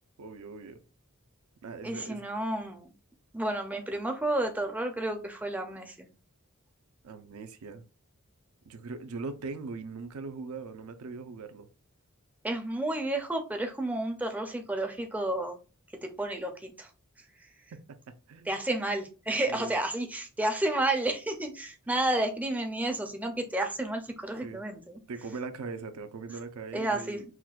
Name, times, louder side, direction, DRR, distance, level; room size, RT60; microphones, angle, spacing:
voice 1, 0.2-0.8 1.6-2.3 7.0-7.8 8.7-11.7 17.9-18.5 19.5-19.8 24.4-24.6 25.1-27.2, right 4 dB, 80° right, 0.5 m, -40 dB
voice 2, 1.8-2.9 3.3-6.1 12.4-15.6 16.0-16.9 18.5-25.0 26.7-27.2, right 1 dB, 5° right, 0.4 m, -31 dB
5.7 x 2.2 x 2.3 m
head